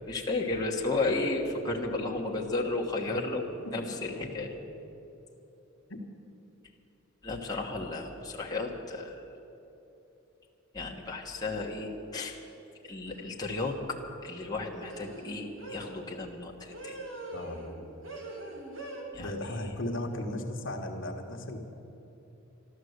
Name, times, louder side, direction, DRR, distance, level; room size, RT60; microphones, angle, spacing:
voice 1, 0.1-4.5 7.2-9.2 10.7-12.4 12.8-17.0 19.1-19.3, left 2 dB, 20° left, -2 dB, 1.3 m, -33 dB
sound 1, 13.1-13.4 14.8-16.0 16.7-17.8 18.0-19.0, right 1 dB, 65° right, 2.5 m, -42 dB
voice 2, 17.3-17.7 19.2-21.6, left 1 dB, 60° left, 3 dB, 1.4 m, -36 dB
13.0 x 13.0 x 8.0 m, 2.9 s
head